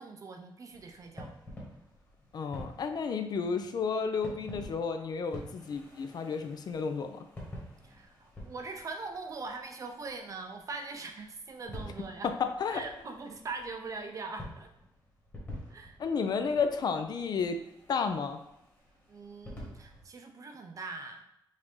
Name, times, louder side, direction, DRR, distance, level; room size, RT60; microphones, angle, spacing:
voice 1, 0.0-1.4 7.8-12.3 12.7-14.7 15.7-16.0 19.1-21.2, right 3 dB, 40° right, 4 dB, 0.6 m, -42 dB
sound 1, 0.7-20.1, equal, 20° left, 1.4 m, -49 dB
voice 2, 2.3-7.2 12.2-12.3 12.6-12.8 16.0-17.6 17.9-18.4, left 5 dB, 55° left, 7 dB, 0.4 m, -32 dB
4.9 x 2.7 x 3.6 m, 0.80 s
wide cardioid pair, 150°, 8 cm